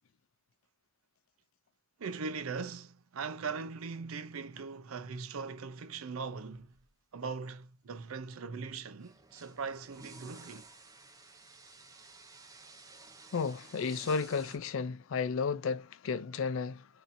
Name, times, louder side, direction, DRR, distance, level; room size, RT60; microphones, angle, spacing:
voice 1, 2.0-6.7 7.1-10.7, right 5 dB, 75° right, 0.5 m, -40 dB
sound 1, 6.5-6.8 7.9-8.0 8.6-14.6, right 3 dB, 15° right, 0.7 m, -54 dB
voice 2, 13.3-16.9, left 5 dB, 65° left, 0.4 m, -33 dB
4.1 x 2.7 x 2.5 m
head